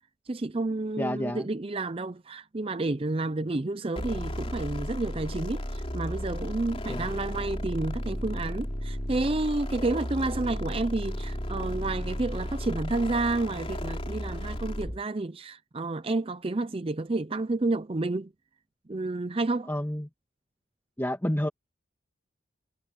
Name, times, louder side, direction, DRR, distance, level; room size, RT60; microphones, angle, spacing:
voice 1, 0.3-18.3 18.9-19.7, right 2 dB, 30° right, 0.5 m, -30 dB
voice 2, 1.0-1.5 6.9-7.1 19.7-20.1 21.0-21.5, equal, 10° left, 2.0 m, -29 dB
sound 1, 4.0-15.0, equal, 30° left, 3.4 m, -34 dB
head